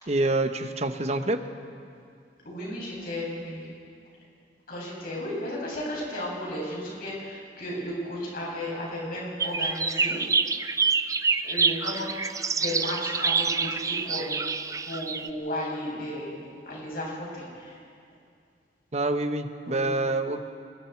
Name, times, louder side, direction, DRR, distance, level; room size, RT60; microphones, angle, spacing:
voice 1, 0.1-1.4 18.9-20.4, right 2 dB, 40° right, 7 dB, 1.1 m, -26 dB
voice 2, 2.4-3.7 4.7-10.2 11.4-12.2 12.5-14.3 14.9-17.8 19.7-19.9, left 1 dB, 55° left, -4 dB, 7.5 m, -34 dB
sound 1, 9.4-15.3, right 5 dB, 20° right, 0.5 m, -27 dB
27.0 x 21.5 x 4.6 m, 2.3 s
head